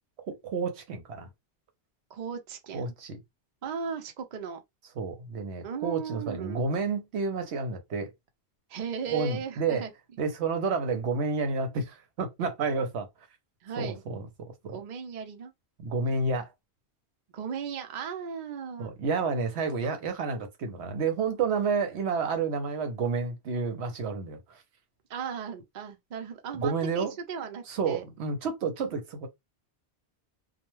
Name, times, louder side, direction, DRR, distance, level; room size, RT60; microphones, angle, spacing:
voice 1, 0.3-1.3 2.7-3.2 5.0-8.1 9.1-9.9 10.2-13.1 13.8-14.8 15.8-16.5 18.8-24.6 26.5-27.1 27.7-29.3, right 4 dB, 75° right, 0.9 m, -30 dB
voice 2, 2.1-2.9 3.6-4.6 5.6-6.7 8.7-9.9 13.6-14.0 14.7-15.5 17.3-18.9 25.1-28.0, right 6 dB, 50° right, 0.6 m, -37 dB
2.3 x 2.1 x 3.0 m
omnidirectional pair, 1.1 m